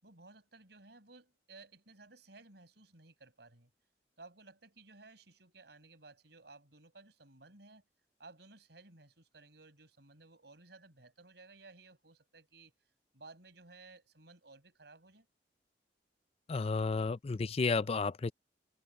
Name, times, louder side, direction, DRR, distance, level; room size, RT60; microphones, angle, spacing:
voice 1, 0.0-3.7 4.2-7.8 8.2-12.7 13.1-15.3, right 3 dB, 65° right, 6.1 m, -57 dB
voice 2, 16.5-18.3, left 4 dB, 35° left, 0.4 m, -32 dB
head